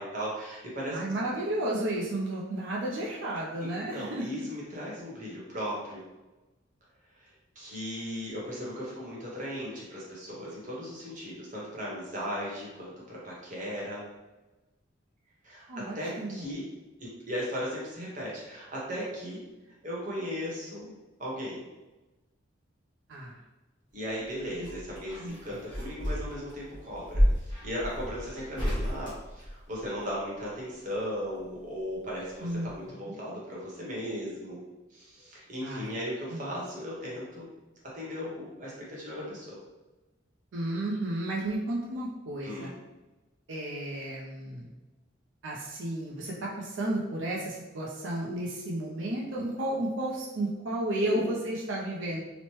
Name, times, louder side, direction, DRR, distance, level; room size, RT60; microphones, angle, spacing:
voice 1, 0.0-1.0 3.6-6.0 7.2-7.3 7.6-14.0 15.4-16.6 17.0-19.4 19.8-21.6 23.9-34.6 34.9-37.5 37.9-39.6 42.4-42.8 51.0-51.3, equal, 40° right, -5 dB, 0.9 m, -37 dB
voice 2, 0.9-4.3 15.7-16.5 23.1-23.4 25.2-25.6 32.4-32.7 33.0-33.1 35.6-35.9 36.3-36.5 40.5-42.7 43.5-44.7 45.4-52.2, right 1 dB, 65° right, -4 dB, 0.5 m, -33 dB
sound 1, 24.1-30.1 31.5-32.4 32.6-32.7, equal, 25° left, 1.0 m, -31 dB
3.0 x 2.0 x 3.0 m, 1.1 s
head